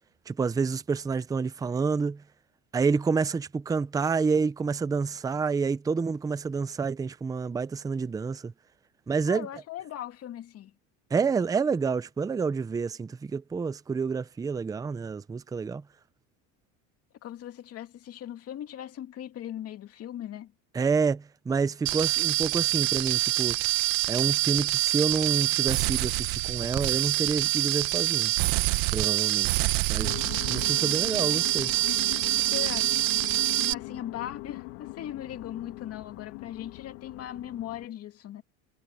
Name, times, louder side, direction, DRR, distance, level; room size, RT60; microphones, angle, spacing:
voice 1, 0.3-2.2 2.7-8.5 9.1-9.5 11.1-15.8 20.7-23.6 24.1-28.3 28.9-29.5 29.9-31.7, right 5 dB, 10° right, 0.6 m, -28 dB
voice 2, 9.3-10.7 17.2-20.5 32.1-33.0 33.6-38.4, left 11 dB, 40° left, 2.6 m, -39 dB
sound 1, 21.9-33.7, right 21 dB, 60° right, 1.4 m, -26 dB
sound 2, 30.0-37.9, left 23 dB, 70° left, 2.0 m, -40 dB
supercardioid pair, 135°, 38 cm